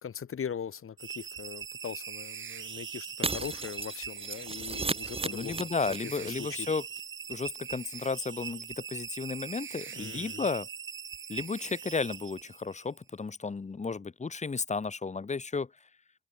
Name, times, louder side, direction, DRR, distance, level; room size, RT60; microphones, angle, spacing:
voice 1, 0.0-5.7 6.2-6.7 9.9-10.4, left 7 dB, 45° left, 2.2 m, -40 dB
sound 1, 1.0-12.9, right 7 dB, 40° right, 1.3 m, -41 dB
Shatter, 3.2-6.3 6.6-6.7 7.0-7.1, right 3 dB, 20° right, 2.0 m, -35 dB
voice 2, 5.3-6.8 7.3-10.7 11.3-15.7, left 4 dB, 25° left, 1.3 m, -33 dB
cardioid pair, 90°, 30 cm